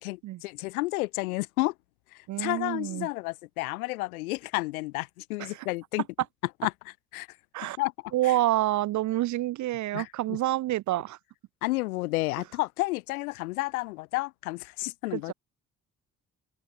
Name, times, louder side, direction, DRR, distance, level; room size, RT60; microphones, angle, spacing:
voice 1, 0.0-1.7 2.4-6.0 6.6-6.7 7.1-7.3 7.8-7.9 9.9-10.4 11.6-15.3, left 22 dB, 80° left, 0.9 m, -31 dB
voice 2, 2.3-3.1 5.4-5.7 7.5-7.8 8.1-11.2 15.1-15.3, right 15 dB, 45° right, 0.4 m, -28 dB
figure-of-eight pair, 40°, 43 cm